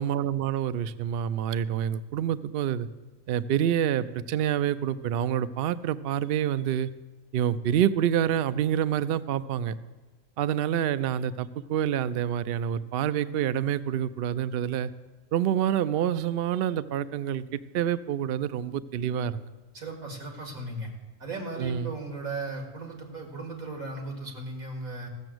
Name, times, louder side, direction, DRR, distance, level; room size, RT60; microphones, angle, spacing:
voice 1, 0.0-2.9 3.3-6.9 7.3-9.8 10.4-14.9 15.3-19.4 21.6-21.9, right 10 dB, 65° right, 14 dB, 0.6 m, -27 dB
voice 2, 19.7-20.9 21.2-25.1, right 2 dB, 85° right, 3 dB, 2.6 m, -36 dB
14.5 x 7.0 x 7.7 m, 1.2 s
omnidirectional pair, 1.4 m